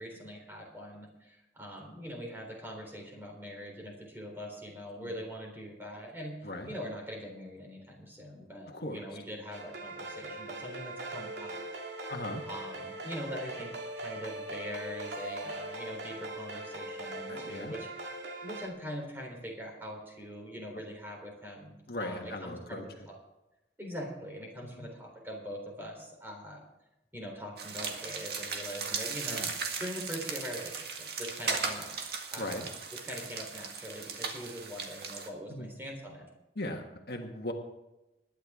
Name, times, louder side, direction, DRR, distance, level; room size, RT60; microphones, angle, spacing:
voice 1, 0.0-11.6 12.4-18.1 18.4-23.2 23.8-26.6 27.1-29.5 29.8-31.9 32.3-32.7 33.0-36.3, equal, 10° right, 0 dB, 3.6 m, -42 dB
voice 2, 8.7-9.0 12.1-12.4 17.3-17.7 21.9-22.8 24.6-24.9 29.3-29.5 32.4-32.6 35.5-35.7 36.5-37.5, left 1 dB, 60° left, 3 dB, 1.5 m, -38 dB
sound 1, 9.5-18.7, right 2 dB, 85° right, 2.1 m, -41 dB
sound 2, 27.6-35.3, right 5 dB, 65° right, 1.8 m, -37 dB
20.5 x 10.5 x 3.7 m, 0.96 s
head